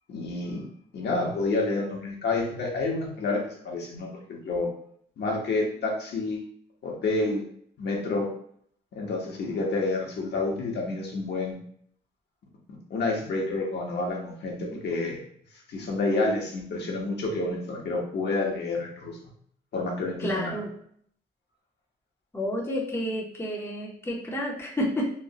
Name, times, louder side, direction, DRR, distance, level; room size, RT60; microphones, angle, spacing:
voice 1, 0.1-0.6 0.9-4.7 5.2-6.4 6.8-7.4 7.8-8.3 8.9-11.6 12.9-15.2 15.7-19.2 19.7-20.6, left 2 dB, 55° left, -1 dB, 0.9 m, -29 dB
voice 2, 20.2-20.7 22.3-25.1, equal, 10° left, -3 dB, 0.7 m, -30 dB
3.1 x 2.1 x 2.7 m, 0.64 s
cardioid pair, 90°, 20 cm